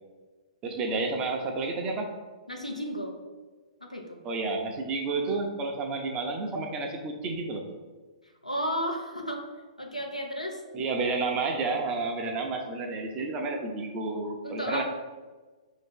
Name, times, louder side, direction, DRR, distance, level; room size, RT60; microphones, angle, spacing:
voice 1, 0.6-2.1 4.2-7.6 10.7-14.8, right 3 dB, 25° right, 2 dB, 0.6 m, -30 dB
voice 2, 2.5-3.1 3.8-4.2 8.4-9.4 9.8-10.6 14.4-14.8, equal, 90° left, 1 dB, 0.7 m, -33 dB
5.2 x 2.7 x 3.7 m, 1.3 s
figure-of-eight pair, 115°, 4 cm